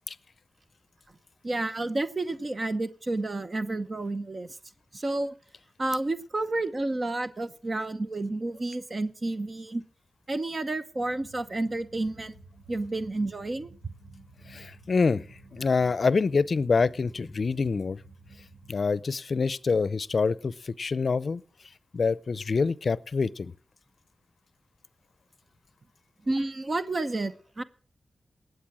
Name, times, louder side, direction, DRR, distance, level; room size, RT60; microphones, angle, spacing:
voice 1, 1.4-4.6 4.9-5.3 5.8-9.8 10.3-12.3 12.7-13.7 26.2-27.6, right 2 dB, 45° right, 0.9 m, -30 dB
sound 1, 10.9-18.7, right 2 dB, 85° right, 2.2 m, -52 dB
voice 2, 14.5-15.2 15.5-18.0 18.7-21.4 21.9-23.5, left 4 dB, 60° left, 0.5 m, -26 dB
19.0 x 7.9 x 6.2 m
cardioid pair, 55°, 0 cm